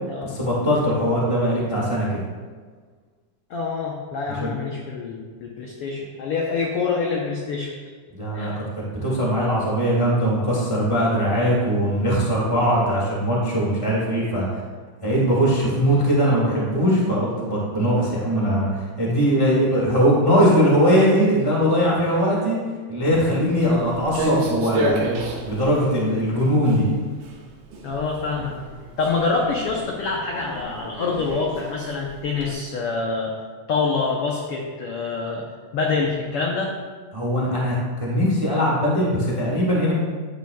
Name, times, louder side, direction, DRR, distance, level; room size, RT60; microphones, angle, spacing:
voice 1, 0.2-2.2 4.4-4.5 8.1-8.6 9.0-14.6 15.0-22.6 22.9-25.0 25.4-26.8 37.1-39.9, equal, 55° right, -5 dB, 0.3 m, -20 dB
voice 2, 3.5-7.7 8.3-8.6 27.8-28.5 29.0-33.3 33.7-35.4 35.7-36.7, left 4 dB, 85° left, -1 dB, 1.2 m, -26 dB
Walk footsteps, 23.0-32.5, right 2 dB, 90° right, 2.6 m, -31 dB
11.0 x 9.0 x 2.3 m, 1.5 s
omnidirectional pair, 3.6 m